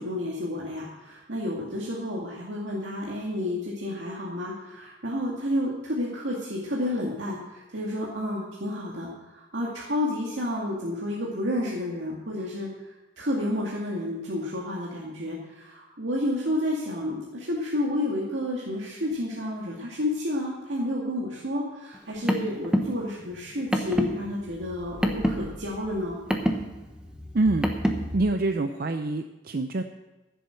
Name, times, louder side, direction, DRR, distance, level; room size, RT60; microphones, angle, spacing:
voice 1, 0.0-9.1 9.3-12.7 13.2-26.2, left 1 dB, 80° right, -4 dB, 2.2 m, -30 dB
Car, 21.9-28.2, equal, 5° right, 1.1 m, -28 dB
voice 2, 27.3-27.7 28.1-29.8, right 2 dB, 50° right, 7 dB, 0.6 m, -25 dB
14.5 x 8.0 x 6.4 m, 1.1 s
head